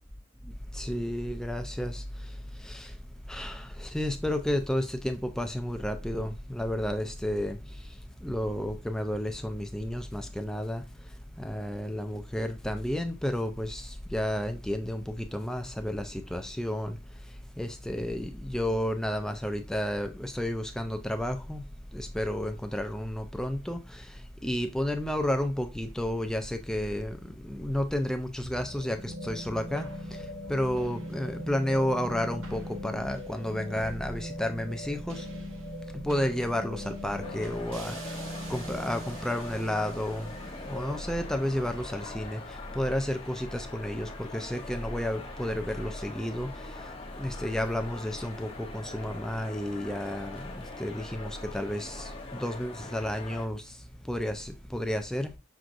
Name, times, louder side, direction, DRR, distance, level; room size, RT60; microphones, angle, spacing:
voice 1, 0.7-2.0 2.6-2.9 3.3-7.6 8.2-10.8 11.4-17.0 17.6-21.6 21.9-24.1 24.4-29.9 30.5-35.2 36.0-38.0 38.5-40.3 40.6-42.4 42.8-46.7 47.2-53.7 54.1-55.3, left 1 dB, 5° left, 0.3 m, -31 dB
sound 1, 28.4-42.9, equal, 85° right, 0.9 m, -41 dB
sound 2, 37.2-53.5, left 3 dB, 30° left, 0.7 m, -43 dB
6.0 x 2.5 x 2.5 m
head